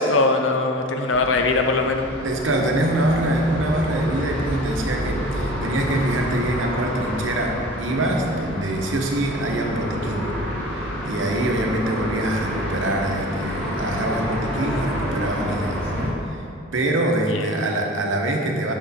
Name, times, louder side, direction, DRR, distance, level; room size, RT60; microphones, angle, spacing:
voice 1, 0.0-2.1 17.3-17.6, left 3 dB, 75° left, 4 dB, 0.6 m, -21 dB
sound 1, 1.1-16.1, equal, 5° left, 1.7 m, -29 dB
voice 2, 2.2-10.3 11.0-16.4 16.7-18.7, right 1 dB, 80° right, 1 dB, 0.9 m, -24 dB
6.3 x 6.2 x 4.1 m, 2.7 s
head